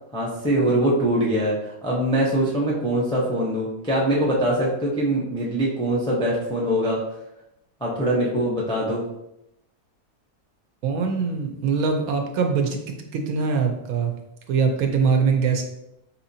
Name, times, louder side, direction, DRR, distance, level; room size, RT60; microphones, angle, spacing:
voice 1, 0.1-7.0 7.8-9.0, right 1 dB, 5° left, -4 dB, 0.4 m, -23 dB
voice 2, 10.8-14.1 14.5-15.6, right 5 dB, 75° right, 3 dB, 1.1 m, -23 dB
4.8 x 2.8 x 2.7 m, 0.86 s
omnidirectional pair, 1.6 m